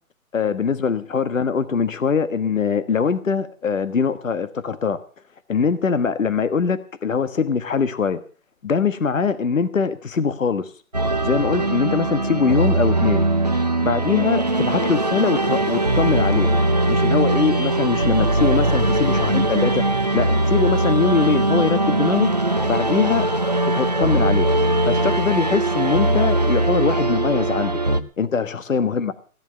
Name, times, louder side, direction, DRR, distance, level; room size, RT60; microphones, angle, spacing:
voice 1, 0.3-5.0 5.5-8.2 8.6-10.7 11.2-13.3 13.8-16.5 16.9-19.8 20.1-22.3 22.7-23.3 23.6-27.7 28.2-29.1, left 5 dB, 65° left, 12 dB, 1.5 m, -22 dB
sound 1, 10.9-28.0, right 2 dB, 30° right, 0.7 m, -20 dB
17.5 x 10.5 x 6.4 m, 0.41 s
hypercardioid pair, 180°, 42 cm